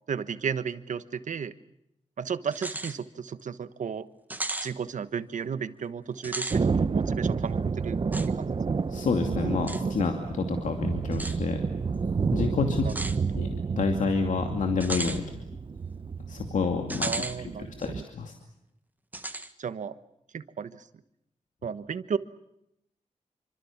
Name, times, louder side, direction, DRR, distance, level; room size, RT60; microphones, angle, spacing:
voice 1, 0.1-1.5 2.2-4.1 4.6-8.0 8.3-8.6 12.8-13.0 13.3-13.5 17.0-18.0 19.6-20.0 20.3-20.9 21.6-22.2, right 7 dB, 80° right, 12 dB, 1.3 m, -34 dB
sound 1, 2.5-3.0 3.4-3.5 4.3-4.7 6.2-6.6 8.1-8.3 9.7-9.8 11.1-11.4 12.9-13.2 14.8-15.2 16.9-17.4 17.8-17.9 19.1-19.5, right 2 dB, 15° right, 1.5 m, -34 dB
Thunder, 6.5-18.0, right 5 dB, 40° right, 1.0 m, -30 dB
voice 2, 8.9-11.6 12.3-12.8 13.3-13.5 13.7-15.4 16.3-17.1 17.8-18.3, left 5 dB, 80° left, 4 dB, 2.5 m, -28 dB
27.5 x 25.0 x 7.3 m, 0.80 s
wide cardioid pair, 145°, 13 cm